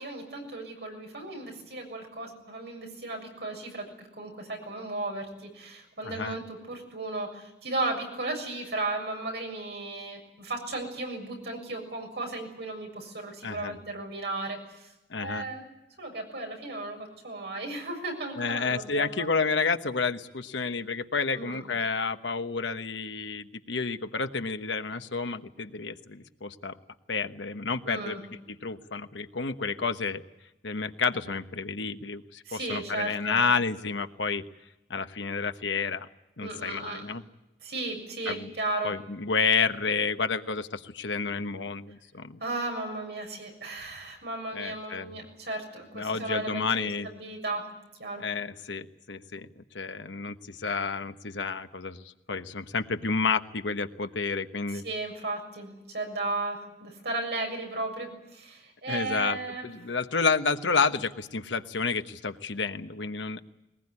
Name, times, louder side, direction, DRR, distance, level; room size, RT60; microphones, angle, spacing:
voice 1, 0.0-14.9 15.2-15.6 16.0-19.3 21.3-21.6 27.8-28.2 32.4-33.4 36.4-37.1 37.6-38.9 42.4-47.7 48.0-48.2 54.7-59.7, right 2 dB, 65° right, 2 dB, 6.9 m, -35 dB
voice 2, 6.0-6.4 13.4-13.7 15.1-15.5 18.4-26.7 27.1-28.2 28.6-30.2 30.6-34.4 34.9-36.1 36.4-37.2 38.3-38.5 38.8-42.4 44.5-45.1 45.9-47.1 48.2-54.8 58.9-59.4 59.6-63.4, left 4 dB, 85° left, 9 dB, 1.2 m, -30 dB
21.0 x 20.0 x 9.8 m, 0.93 s
head